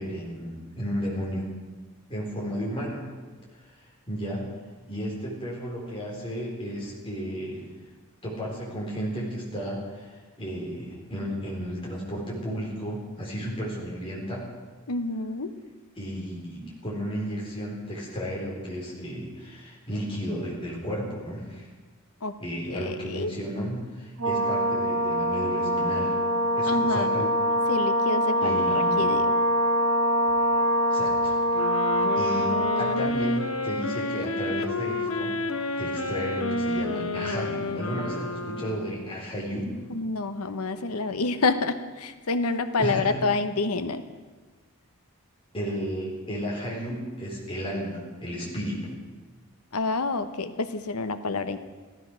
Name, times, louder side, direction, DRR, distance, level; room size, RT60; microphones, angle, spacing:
voice 1, 0.0-1.5 2.1-3.1 3.6-4.5 4.9-7.6 8.2-14.5 16.0-21.7 22.4-26.1 26.5-27.3 28.4-29.0 30.9-31.6 32.1-35.4 35.8-39.7 42.8-43.2 45.5-49.0, equal, 25° left, -4 dB, 4.2 m, -33 dB
voice 2, 14.9-15.5 22.2-22.4 22.7-23.3 26.6-27.3 27.7-29.3 39.9-44.0 49.7-51.6, left 3 dB, 85° left, 10 dB, 1.0 m, -28 dB
Brass instrument, 24.2-33.1, equal, 85° right, 4.1 m, -24 dB
sound 1, 31.5-39.2, left 2 dB, 70° left, 1.1 m, -30 dB
15.0 x 13.0 x 6.3 m, 1.3 s
head